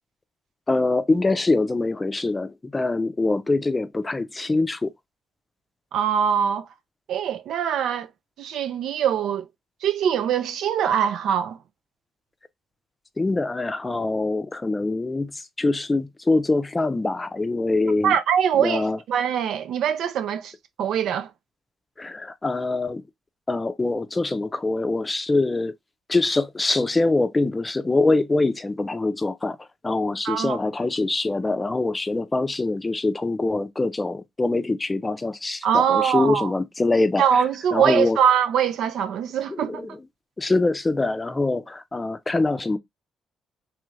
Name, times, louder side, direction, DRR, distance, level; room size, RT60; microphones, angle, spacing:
voice 1, 0.7-4.9 13.2-18.2 18.6-19.0 22.0-23.0 23.5-25.7 26.1-29.6 29.8-37.2 37.7-38.2 39.5-40.0 40.4-42.8, left 2 dB, 20° left, 0.5 m, -24 dB
voice 2, 5.9-6.7 7.1-8.1 8.4-9.5 9.8-11.6 18.0-20.5 20.8-21.3 30.2-30.6 35.6-36.5 37.2-39.9, right 8 dB, 75° right, 0.4 m, -23 dB
3.1 x 2.4 x 3.1 m
cardioid pair, 90°, 0 cm